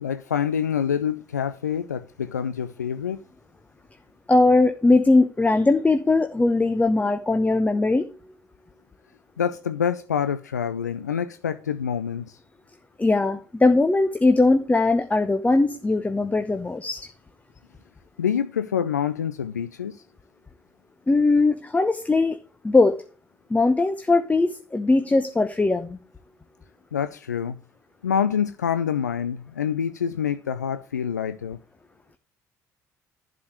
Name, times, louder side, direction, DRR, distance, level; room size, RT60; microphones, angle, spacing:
voice 1, 0.0-3.2 9.4-12.4 18.2-20.0 26.9-27.6 28.0-31.6, left 8 dB, 85° left, 0.4 m, -26 dB
voice 2, 4.3-8.1 13.0-17.1 21.1-22.4 22.6-22.9 23.5-26.0, left 3 dB, 15° left, 1.0 m, -20 dB
11.5 x 5.0 x 7.9 m
figure-of-eight pair, 50°, 9 cm